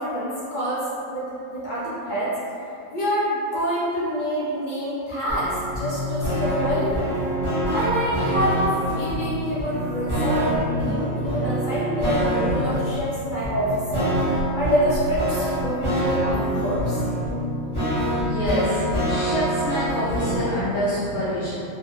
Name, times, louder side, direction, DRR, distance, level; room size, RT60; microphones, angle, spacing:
voice 1, 0.0-2.3 2.9-7.1 7.7-14.1 14.5-17.0, equal, 60° left, -9 dB, 0.5 m, -26 dB
sound 1, 5.3-20.6, equal, 20° left, 0.9 m, -25 dB
voice 2, 18.2-21.6, left 1 dB, 80° left, -10 dB, 1.0 m, -26 dB
2.7 x 2.4 x 2.7 m, 2.6 s
omnidirectional pair, 1.5 m